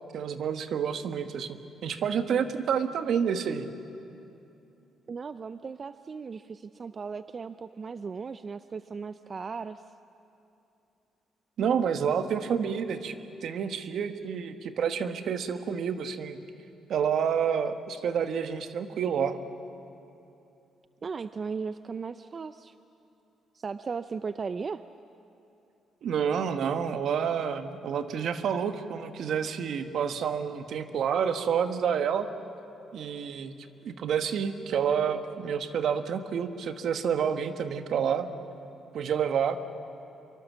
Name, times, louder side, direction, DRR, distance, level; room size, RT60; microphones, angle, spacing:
voice 1, 0.1-3.7 11.6-13.2 13.4-16.4 16.9-19.4 26.0-32.3 32.9-33.5 33.8-38.3 38.9-39.6, right 7 dB, 65° right, 9 dB, 1.4 m, -29 dB
voice 2, 5.1-9.8 21.0-22.7 23.5-24.8, right 5 dB, 40° right, 12 dB, 0.5 m, -37 dB
26.5 x 23.5 x 7.4 m, 2.8 s
cardioid pair, 90°, 0 cm